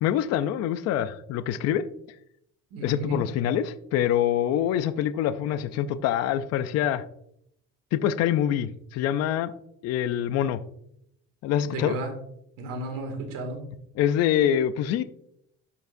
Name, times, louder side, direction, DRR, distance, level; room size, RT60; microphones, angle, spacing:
voice 1, 0.0-1.8 2.8-7.0 7.9-9.5 9.8-10.6 11.4-11.9 14.0-15.0, left 10 dB, 50° left, 13 dB, 0.4 m, -25 dB
voice 2, 2.7-3.2 11.7-12.1 12.6-13.6, right 2 dB, 75° right, 3 dB, 2.1 m, -33 dB
12.0 x 4.7 x 2.5 m, 0.73 s
cardioid pair, 175°, 33 cm